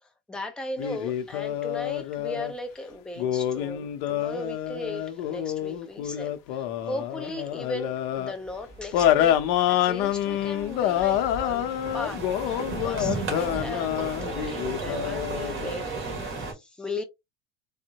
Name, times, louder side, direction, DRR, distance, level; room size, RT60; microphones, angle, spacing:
voice 1, 0.0-9.4 9.7-11.7 11.9-12.2 12.7-17.0, left 2 dB, 5° left, 0.3 m, -37 dB
sound 1, 0.8-2.5 3.2-8.3 8.9-15.7, left 11 dB, 70° left, 0.6 m, -27 dB
sound 2, 8.5-16.5, right 3 dB, 35° right, 1.5 m, -35 dB
3.6 x 2.1 x 2.7 m
cardioid pair, 145°, 34 cm